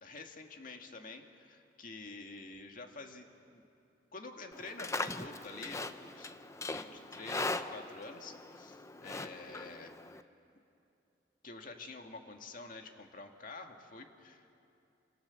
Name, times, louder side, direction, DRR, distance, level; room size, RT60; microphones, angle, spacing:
voice 1, 0.0-3.6 4.1-6.3 6.7-9.9 11.4-14.6, left 3 dB, 50° left, 4 dB, 2.0 m, -48 dB
Livestock farm animals working animals, 4.5-10.2, left 2 dB, 15° left, 0.7 m, -40 dB
28.5 x 27.0 x 7.1 m, 2.7 s
head